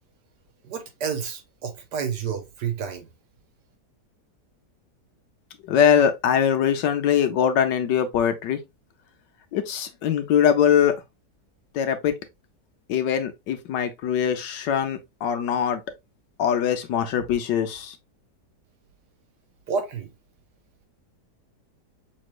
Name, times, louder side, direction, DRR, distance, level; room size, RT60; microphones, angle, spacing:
voice 1, 0.6-3.1 19.7-20.1, right 6 dB, 75° right, 1.6 m, -30 dB
voice 2, 5.7-8.6 9.5-11.0 11.7-12.1 12.9-15.8 16.4-18.0, left 8 dB, 85° left, 1.5 m, -22 dB
6.3 x 3.2 x 2.3 m
omnidirectional pair, 1.9 m